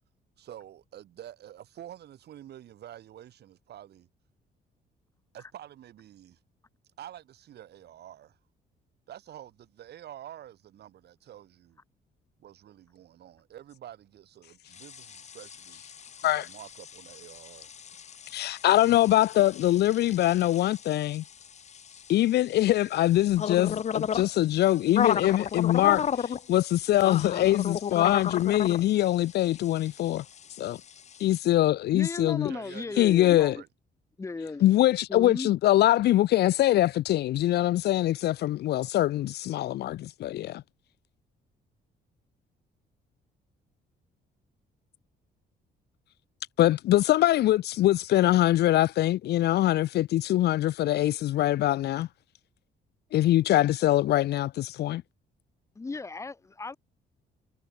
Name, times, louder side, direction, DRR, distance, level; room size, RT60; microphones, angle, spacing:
voice 1, 0.4-4.1 5.3-6.4 7.0-8.4 9.1-11.8 12.4-15.8 16.2-17.7 32.5-33.7, right 11 dB, 65° right, 3.0 m, -48 dB
sound 1, 14.7-31.4, left 8 dB, 40° left, 1.3 m, -35 dB
voice 2, 18.3-21.2 22.1-30.2 30.6-30.8 31.2-32.5 33.0-33.5 34.6-40.6 46.6-52.1 53.1-55.0, left 14 dB, 65° left, 0.5 m, -23 dB
voice 3, 31.9-33.6 34.2-34.6 35.1-35.5 55.8-56.8, left 3 dB, 15° left, 0.9 m, -36 dB
cardioid pair, 155°, 18 cm